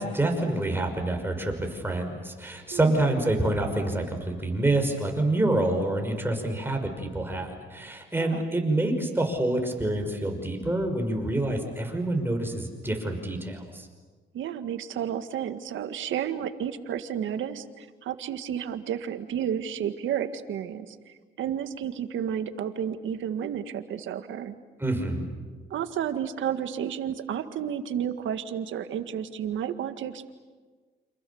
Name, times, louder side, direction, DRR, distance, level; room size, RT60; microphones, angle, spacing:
voice 1, 0.0-13.9 24.8-25.2, right 2 dB, 10° right, 3 dB, 5.7 m, -27 dB
voice 2, 14.3-21.0 21.4-24.6 25.7-30.3, right 9 dB, 75° right, 9 dB, 1.8 m, -31 dB
29.0 x 27.0 x 7.1 m, 1.4 s
cardioid pair, 90°, 20 cm